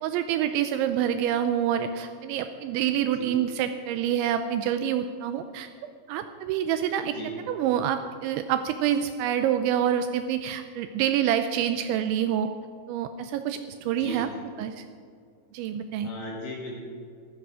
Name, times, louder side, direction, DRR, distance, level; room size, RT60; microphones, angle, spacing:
voice 1, 0.0-7.1 7.5-12.5 12.9-14.3 14.6-14.8 15.5-16.1, right 10 dB, 80° right, 9 dB, 2.7 m, -27 dB
voice 2, 7.0-7.3 13.9-14.2 16.0-16.8, left 1 dB, 60° left, -3 dB, 3.9 m, -37 dB
15.0 x 14.5 x 4.9 m, 2.3 s
omnidirectional pair, 5.7 m